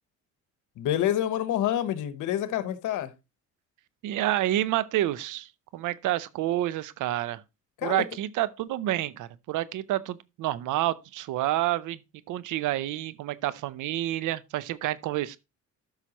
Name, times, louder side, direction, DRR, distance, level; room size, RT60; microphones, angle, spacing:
voice 1, 0.8-3.1 7.8-8.0, left 11 dB, 85° left, 1.1 m, -27 dB
voice 2, 4.0-7.4 7.8-12.0 12.3-15.4, right 14 dB, 80° right, 0.7 m, -29 dB
13.0 x 5.7 x 2.9 m
cardioid pair, 90°, 30 cm